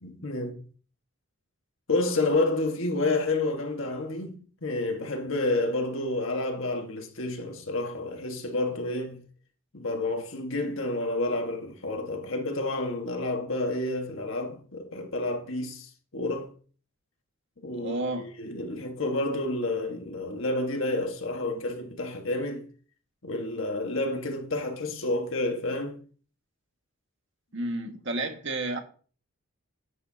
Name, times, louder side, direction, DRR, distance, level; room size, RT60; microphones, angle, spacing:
voice 1, 0.0-0.6 1.9-9.2 9.7-16.5 17.6-22.7 23.2-26.0, left 2 dB, 65° left, 1.6 m, -30 dB
voice 2, 17.7-18.3 27.5-28.8, right 2 dB, 55° right, 1.8 m, -31 dB
11.0 x 9.7 x 2.8 m
head